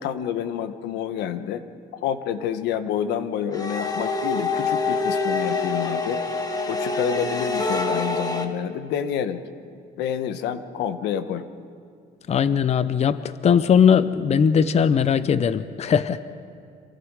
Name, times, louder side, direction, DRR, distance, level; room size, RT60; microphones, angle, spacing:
voice 1, 0.0-1.6 1.9-6.2 6.7-9.4 10.0-11.5, left 9 dB, 85° left, 10 dB, 1.3 m, -28 dB
sound 1, 3.5-8.4, left 3 dB, 25° left, 1.9 m, -25 dB
voice 2, 12.3-16.2, left 7 dB, 40° left, 13 dB, 0.7 m, -19 dB
29.5 x 27.0 x 4.9 m, 2.3 s
cardioid pair, 110°, 17 cm